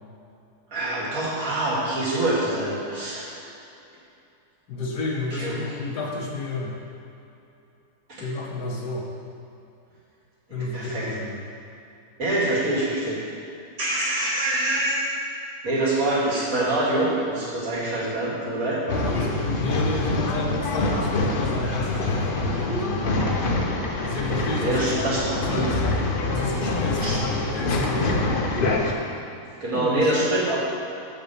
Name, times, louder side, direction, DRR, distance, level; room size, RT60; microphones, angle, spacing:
voice 1, 0.7-3.3 5.3-5.9 8.1-8.2 10.5-11.1 12.2-13.2 13.8-15.0 15.6-18.8 24.6-25.2 25.5-25.7 27.0-27.1 29.6-30.6, right 1 dB, 60° right, -7 dB, 2.6 m, -25 dB
voice 2, 4.7-6.7 8.2-9.1 10.5-11.4 18.9-23.2 24.0-25.8 26.3-28.3 29.7-30.3, left 2 dB, 85° left, -1 dB, 1.7 m, -30 dB
Male speech man speaking / Chatter / Rattle, 18.9-28.9, left 2 dB, 45° left, 0.8 m, -25 dB
7.2 x 5.6 x 6.8 m, 2.8 s
omnidirectional pair, 1.7 m